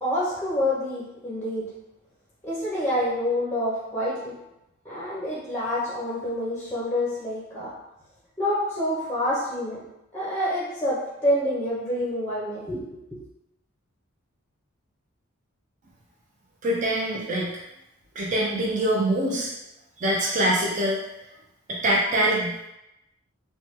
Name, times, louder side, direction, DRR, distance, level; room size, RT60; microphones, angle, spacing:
voice 1, 0.0-1.6 2.4-4.3 4.8-7.7 8.4-9.8 10.1-12.8 13.1-13.2, left 1 dB, 10° left, -7 dB, 0.6 m, -27 dB
voice 2, 16.6-17.5 18.2-19.5 20.0-21.0 21.7-22.7, right 1 dB, 35° right, -3 dB, 0.4 m, -24 dB
3.0 x 2.1 x 3.1 m, 0.90 s
head